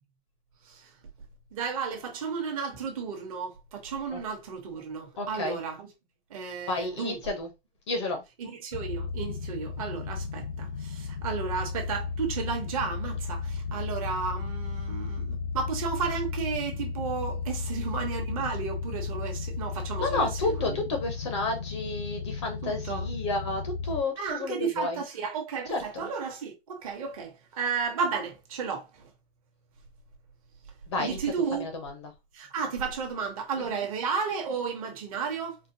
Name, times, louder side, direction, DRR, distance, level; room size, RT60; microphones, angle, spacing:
voice 1, 1.5-5.9 6.3-7.4 8.4-20.8 22.6-23.1 24.2-29.1 31.0-31.7 32.3-35.6, right 5 dB, 35° right, 1.0 m, -33 dB
voice 2, 5.2-5.6 6.7-7.5 7.9-8.2 20.0-25.0 25.7-26.1 30.9-31.2 31.5-32.0 33.7-33.8, left 2 dB, 30° left, 0.6 m, -31 dB
sound 1, 8.7-24.0, left 5 dB, 75° left, 0.7 m, -34 dB
4.2 x 2.2 x 2.7 m
hypercardioid pair, 160°, 31 cm